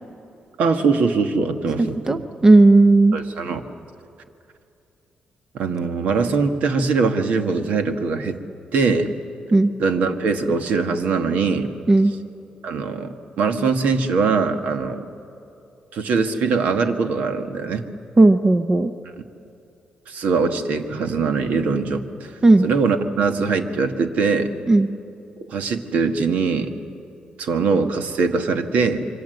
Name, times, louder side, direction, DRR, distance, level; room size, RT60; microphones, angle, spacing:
voice 1, 0.6-2.2 3.1-3.6 5.5-8.4 8.7-9.1 9.8-11.7 12.6-15.0 15.9-17.8 20.1-22.3 22.6-24.5 25.4-26.7 27.4-29.1, right 4 dB, 70° right, 6 dB, 1.7 m, -22 dB
voice 2, 1.8-3.2 9.5-9.7 11.9-12.1 18.2-18.9 22.4-22.6 24.7-24.9, right 2 dB, 20° right, 9 dB, 0.7 m, -14 dB
27.0 x 24.5 x 7.9 m, 2.7 s
cardioid pair, 155°, 3 cm